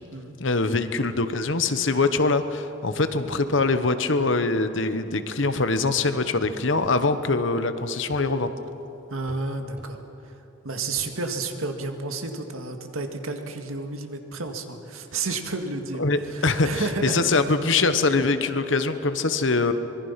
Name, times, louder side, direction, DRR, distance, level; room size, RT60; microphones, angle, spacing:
voice 1, 0.4-8.6 16.0-19.7, left 3 dB, 60° left, 10 dB, 1.1 m, -23 dB
sound 1, 5.6-5.8 6.4-7.0 8.1-8.3 9.3-9.5 9.8-9.9 11.0-11.1, equal, 10° right, 3.9 m, -44 dB
voice 2, 9.1-10.0 10.6-17.2, right 3 dB, 85° right, 5 dB, 2.0 m, -31 dB
25.0 x 21.5 x 5.8 m, 3.0 s
head